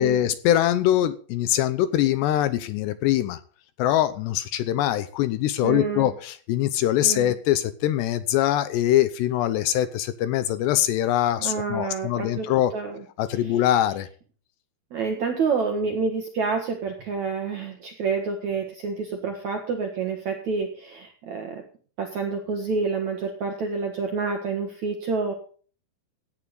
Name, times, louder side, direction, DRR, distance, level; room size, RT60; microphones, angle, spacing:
voice 1, 0.0-3.4 3.8-12.7 13.2-14.1, left 12 dB, 75° left, 13 dB, 2.7 m, -23 dB
voice 2, 5.6-6.1 7.0-7.3 11.4-13.0 14.9-21.6 22.0-25.3, right 4 dB, 60° right, 4 dB, 2.0 m, -28 dB
16.5 x 9.8 x 4.0 m, 0.42 s
omnidirectional pair, 5.4 m